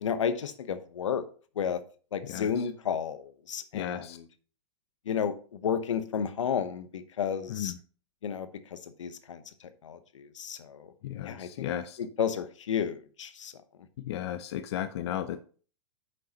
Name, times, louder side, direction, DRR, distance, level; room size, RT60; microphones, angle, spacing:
voice 1, 0.0-1.3 1.6-1.8 2.1-4.2 5.1-7.7 8.2-9.4 9.8-10.9 11.3-11.7 12.0-13.5, left 7 dB, 85° left, 1.0 m, -32 dB
voice 2, 2.2-2.7 3.7-4.2 7.5-7.8 11.0-12.0 14.0-15.4, left 11 dB, 60° left, 0.6 m, -35 dB
9.4 x 6.6 x 2.9 m
hypercardioid pair, 135°, 15 cm